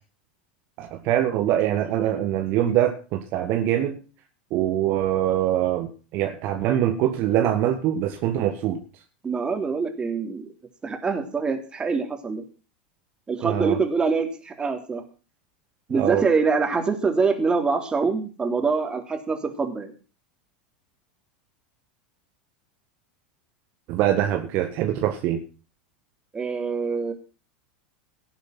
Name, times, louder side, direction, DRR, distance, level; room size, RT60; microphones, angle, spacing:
voice 1, 0.8-4.0 4.5-8.8 13.4-13.8 15.9-16.2 23.9-25.4, right 11 dB, 45° right, 5 dB, 1.6 m, -23 dB
voice 2, 9.2-10.5 10.8-12.4 13.3-15.0 15.9-19.9 26.3-27.1, right 4 dB, 20° right, 5 dB, 3.4 m, -25 dB
18.0 x 8.2 x 6.1 m, 0.36 s
figure-of-eight pair, 85°, 5 cm